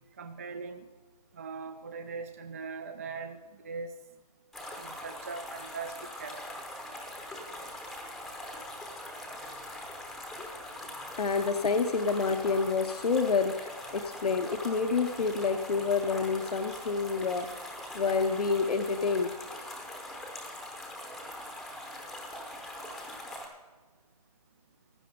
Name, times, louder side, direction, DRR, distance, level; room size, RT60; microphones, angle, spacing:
voice 1, 0.2-0.9 1.3-3.9 4.8-6.4, right 5 dB, 20° right, 8 dB, 0.4 m, -40 dB
sound 1, 4.5-23.5, left 1 dB, ahead, 0.8 m, -42 dB
voice 2, 11.2-17.5 17.9-19.3, left 4 dB, 70° left, 7 dB, 0.9 m, -28 dB
15.5 x 11.0 x 3.8 m, 1.4 s
hypercardioid pair, 160°, 21 cm